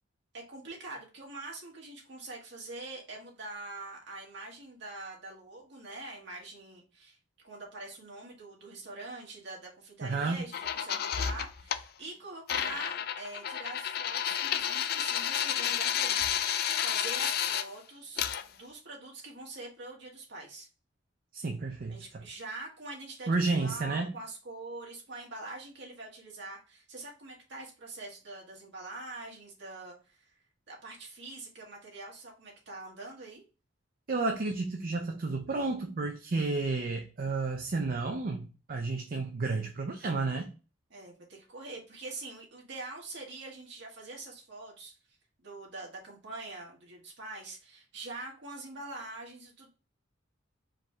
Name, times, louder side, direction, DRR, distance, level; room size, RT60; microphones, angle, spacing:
voice 1, 0.3-20.7 21.9-30.3 30.7-33.4 40.9-44.9 45.4-49.7, right 2 dB, 65° right, 1.8 m, -44 dB
voice 2, 10.0-10.4 21.3-22.2 23.3-24.1 34.1-40.5, right 3 dB, 50° right, 0.5 m, -31 dB
sound 1, 10.5-11.8 12.5-17.7 18.2-18.4, left 9 dB, 55° left, 0.4 m, -31 dB
4.7 x 3.1 x 3.4 m
head